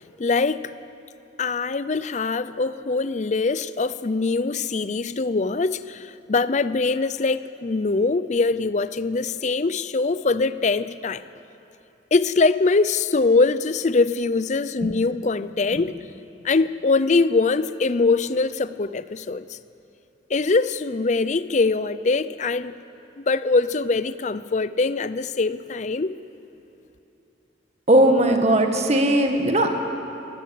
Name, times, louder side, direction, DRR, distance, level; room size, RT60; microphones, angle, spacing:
voice 1, 0.2-0.7 1.4-11.2 12.1-16.0 16.4-19.6 20.3-22.7 23.2-26.2, left 3 dB, 40° left, 15 dB, 0.5 m, -22 dB
voice 2, 27.9-29.7, right 1 dB, 35° right, 4 dB, 1.8 m, -18 dB
22.5 x 15.0 x 8.4 m, 3.0 s
head